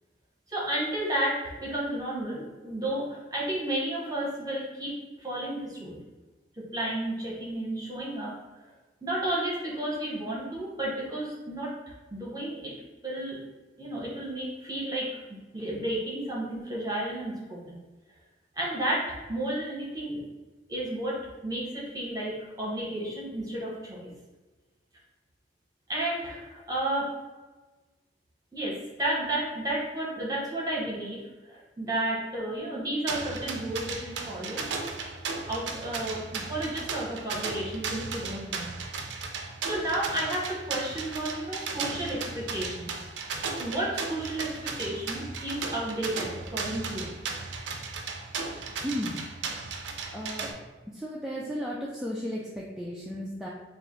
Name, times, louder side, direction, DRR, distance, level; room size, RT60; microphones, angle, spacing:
voice 1, 0.5-4.9 5.2-6.0 6.6-8.3 8.6-8.7 9.0-11.7 12.1-12.7 13.0-13.4 13.8-15.2 15.5-17.8 18.6-20.2 20.7-24.1 25.9-27.1 28.5-31.2 31.5-34.7 35.5-38.7 39.6-42.9 43.6-44.5 44.8-47.1, right 1 dB, 20° right, -5 dB, 0.9 m, -32 dB
sound 1, 33.1-50.5, right 4 dB, 75° right, 0.4 m, -36 dB
voice 2, 48.8-49.2 50.1-50.5 50.9-53.5, equal, ahead, -5 dB, 0.3 m, -34 dB
3.3 x 2.5 x 3.7 m, 1.2 s
head